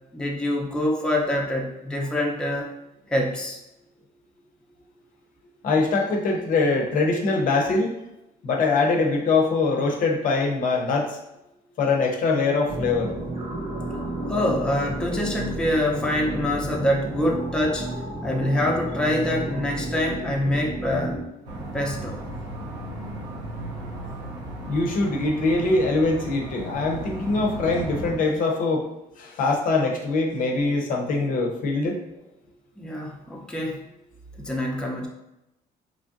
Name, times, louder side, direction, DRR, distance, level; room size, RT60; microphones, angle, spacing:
voice 1, 0.1-2.7 3.1-3.6 14.3-17.9 18.2-21.2 21.7-22.2 32.8-33.8 34.4-35.1, left 1 dB, 5° left, -2 dB, 0.5 m, -25 dB
voice 2, 5.6-7.9 8.4-11.2 11.8-13.1 24.7-28.8 29.2-32.0, left 3 dB, 55° left, 1 dB, 0.6 m, -23 dB
sound 1, 12.7-21.2, right 1 dB, 40° right, 0.9 m, -32 dB
sound 2, 21.4-28.2, right 1 dB, 90° right, 0.8 m, -35 dB
3.1 x 2.5 x 2.5 m, 0.90 s
cardioid pair, 110°, 17 cm